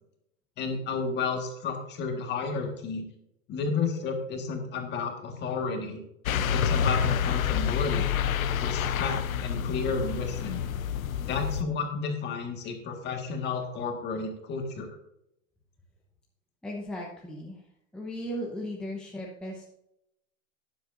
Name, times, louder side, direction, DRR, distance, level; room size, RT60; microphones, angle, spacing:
voice 1, 0.6-3.1 3.5-6.0 6.5-8.1 8.6-10.6 11.2-15.0, left 4 dB, 25° left, 3 dB, 1.7 m, -32 dB
sound 1, 6.3-11.6, left 8 dB, 85° left, 0.8 m, -28 dB
voice 2, 16.6-17.6 17.9-19.6, equal, ahead, -3 dB, 0.9 m, -36 dB
12.0 x 9.6 x 2.6 m, 0.81 s
hypercardioid pair, 140°, 40 cm